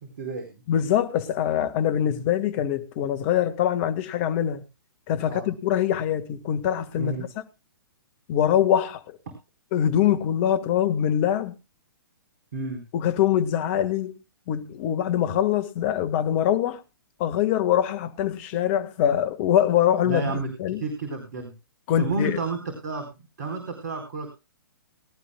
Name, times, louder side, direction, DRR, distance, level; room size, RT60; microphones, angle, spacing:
voice 1, 0.2-0.6 5.2-5.5 7.0-7.3 12.5-12.8 20.0-21.5 22.0-23.0 23.4-24.3, right 3 dB, 55° right, 4.4 m, -31 dB
voice 2, 0.7-4.6 5.1-7.3 8.3-9.2 9.7-11.6 12.9-14.1 14.5-16.8 17.2-20.3 20.6-20.8 21.9-22.4, left 10 dB, 35° left, 1.6 m, -23 dB
22.5 x 12.5 x 2.3 m
figure-of-eight pair, 120°, 12 cm